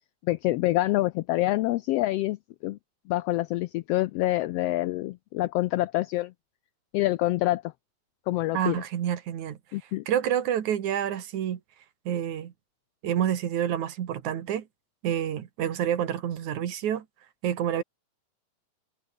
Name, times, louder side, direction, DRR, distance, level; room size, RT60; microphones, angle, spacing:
voice 1, 0.2-2.4 2.6-2.8 3.1-6.3 6.9-7.6 8.3-8.8 9.7-10.0, left 17 dB, 85° left, 1.4 m, -26 dB
voice 2, 8.5-9.6 10.1-11.6 12.1-12.5 13.0-14.6 15.0-17.0 17.4-17.8, right 10 dB, 80° right, 3.2 m, -28 dB
omnidirectional pair, 3.3 m